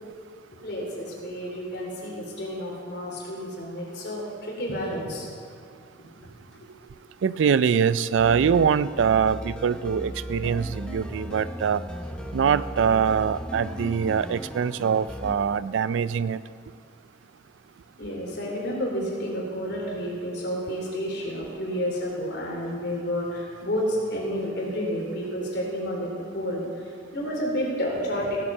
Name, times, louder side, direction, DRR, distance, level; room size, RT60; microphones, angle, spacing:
voice 1, 0.5-5.2 6.0-6.3 6.8-6.9 13.7-13.8 18.0-26.7 27.1-28.4, equal, 60° left, -3 dB, 3.4 m, -30 dB
voice 2, 7.2-11.8 12.3-16.4, right 7 dB, 80° right, 17 dB, 0.3 m, -23 dB
sound 1, 8.2-15.4, equal, 5° left, 0.7 m, -36 dB
16.0 x 7.5 x 5.5 m, 2.2 s
head